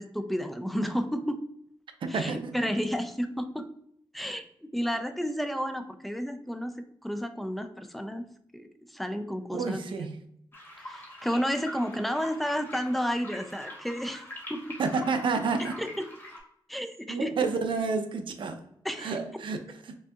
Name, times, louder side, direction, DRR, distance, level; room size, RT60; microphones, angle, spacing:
voice 1, 0.0-1.5 2.1-3.7 4.1-4.4 4.7-6.7 7.0-8.3 8.5-10.1 10.8-14.2 14.5-14.6 15.8-16.1 16.7-17.4 18.8-19.2, equal, ahead, 0.4 m, -31 dB
voice 2, 2.0-2.5 9.5-10.2 14.8-15.8 17.1-18.6 19.0-19.9, right 4 dB, 70° right, 0.6 m, -30 dB
sound 1, 10.5-16.4, left 1 dB, 25° left, 1.4 m, -44 dB
5.2 x 2.7 x 2.4 m
wide cardioid pair, 130°, 9 cm